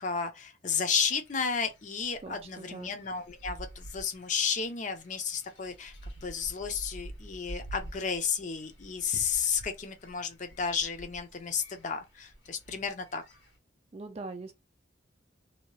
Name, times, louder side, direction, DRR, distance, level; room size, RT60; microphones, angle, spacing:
voice 1, 0.0-5.9 6.2-13.2, left 6 dB, 40° left, 0.5 m, -32 dB
sound 1, 1.2-13.6, right 1 dB, 85° left, 1.5 m, -48 dB
voice 2, 2.2-2.9 13.9-14.5, right 3 dB, 30° right, 0.4 m, -42 dB
2.8 x 2.2 x 3.0 m
head